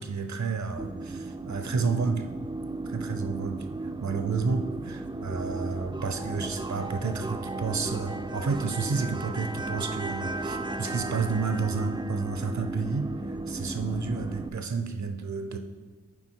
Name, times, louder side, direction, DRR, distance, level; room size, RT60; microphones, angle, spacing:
voice 1, 0.0-2.3 2.8-3.6 4.0-15.6, right 4 dB, 60° right, 7 dB, 0.7 m, -31 dB
sound 1, 0.8-14.5, right 2 dB, 15° right, 0.3 m, -35 dB
9.3 x 3.5 x 4.5 m, 1.3 s
wide cardioid pair, 65°, 32 cm